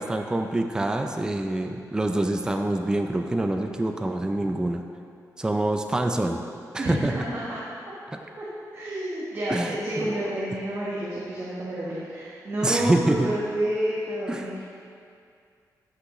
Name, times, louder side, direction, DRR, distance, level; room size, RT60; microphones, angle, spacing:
voice 1, 0.0-4.8 5.4-6.4 6.7-7.1 9.5-10.2 12.6-13.3 14.3-14.5, right 1 dB, 10° right, 5 dB, 0.4 m, -26 dB
voice 2, 6.8-7.6 8.4-8.5 8.7-14.6, right 1 dB, 40° right, -8 dB, 1.4 m, -29 dB
12.5 x 6.2 x 3.1 m, 2.3 s
wide cardioid pair, 130°, 7 cm